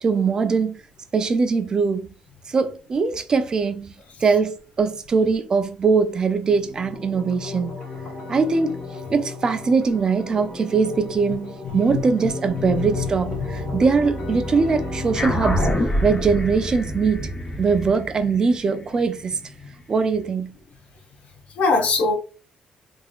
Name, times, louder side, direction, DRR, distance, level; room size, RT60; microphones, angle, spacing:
voice 1, 0.0-0.8 1.1-2.1 2.5-3.9 4.2-7.7 8.3-8.7 9.1-15.7 16.0-17.3 17.6-19.4 19.9-20.5, right 5 dB, 30° right, 0.4 m, -21 dB
sound 1, 6.4-17.4, left 3 dB, 60° left, 1.7 m, -35 dB
voice 2, 11.6-12.0 12.5-13.8 21.6-22.2, left 4 dB, 85° left, 1.2 m, -24 dB
sound 2, 12.8-18.4, right 1 dB, 10° right, 1.1 m, -35 dB
sound 3, 15.1-19.9, left 1 dB, 30° left, 1.1 m, -27 dB
3.6 x 3.4 x 2.4 m
cardioid pair, 165°, 3 cm